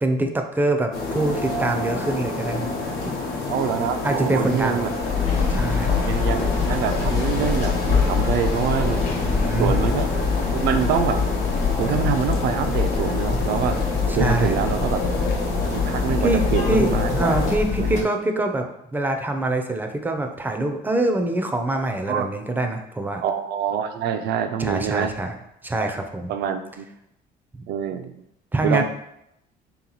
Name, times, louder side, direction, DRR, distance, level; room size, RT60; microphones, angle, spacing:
voice 1, 0.0-2.7 3.0-3.1 4.0-4.9 5.5-5.9 6.7-6.8 9.2-9.8 14.1-14.6 15.6-15.8 16.2-23.2 24.6-25.4 25.6-26.3 27.5-27.6 28.5-28.8, right 2 dB, 10° right, 5 dB, 0.5 m, -25 dB
sound 1, 0.9-17.6, left 3 dB, 85° left, 0.9 m, -28 dB
voice 2, 3.5-4.9 6.0-9.0 9.6-10.1 10.5-11.2 11.8-13.8 14.1-15.0 15.7-17.5 17.8-18.1 22.1-22.3 23.2-25.1 25.8-25.9 26.3-26.9 27.7-28.2 28.6-28.8, right 8 dB, 75° right, 8 dB, 0.5 m, -25 dB
sound 2, 5.0-18.0, left 5 dB, 45° left, 1.0 m, -24 dB
3.4 x 3.0 x 3.9 m, 0.80 s
cardioid pair, 110°, 17 cm